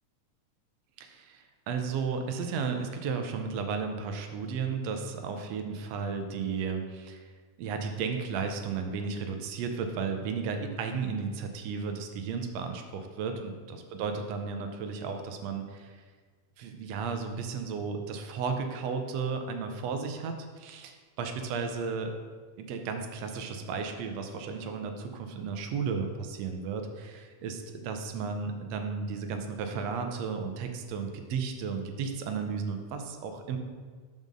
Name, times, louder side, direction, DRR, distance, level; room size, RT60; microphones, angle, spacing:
voice 1, 1.0-7.3 7.6-16.0 16.6-22.1 22.6-33.6, right 5 dB, 75° right, 6 dB, 1.6 m, -34 dB
5.6 x 5.2 x 6.2 m, 1.5 s
omnidirectional pair, 3.6 m